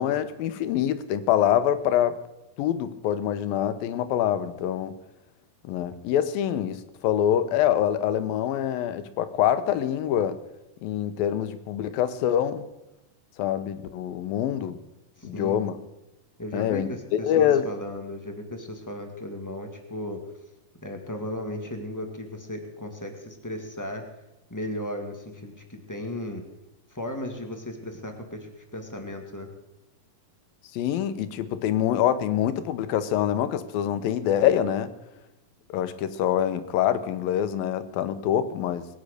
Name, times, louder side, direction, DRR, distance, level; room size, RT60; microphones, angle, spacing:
voice 1, 0.0-2.2 2.6-4.9 5.6-10.4 10.8-12.7 13.4-14.8 15.2-15.7 16.5-17.7 30.7-34.9 35.7-38.9, left 10 dB, 85° left, 12 dB, 2.8 m, -25 dB
voice 2, 15.2-15.6 16.4-20.2 20.8-24.0 24.5-26.4 26.9-29.5, left 1 dB, 10° left, 4 dB, 0.8 m, -35 dB
21.5 x 9.7 x 6.6 m, 0.93 s
omnidirectional pair, 4.0 m